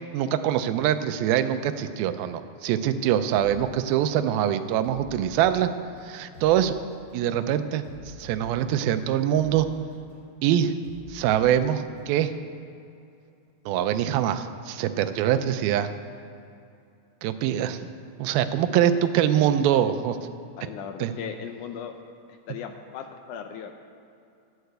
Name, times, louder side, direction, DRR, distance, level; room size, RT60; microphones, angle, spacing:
voice 1, 0.1-5.7 6.0-6.7 7.1-9.7 10.4-10.8 11.1-12.3 13.7-15.9 17.2-17.8 18.2-20.2 21.0-21.1, right 10 dB, 85° right, 9 dB, 2.5 m, -24 dB
sound 1, 3.3-3.6 4.1-4.3 4.8-6.6 7.1-7.3 7.8-9.6 10.1-10.3 10.8-12.3, left 2 dB, 35° left, 3.7 m, -48 dB
voice 2, 20.6-22.0 22.3-23.7, left 8 dB, 80° left, 6 dB, 1.8 m, -37 dB
11.5 x 9.8 x 8.0 m, 2.6 s
omnidirectional pair, 4.4 m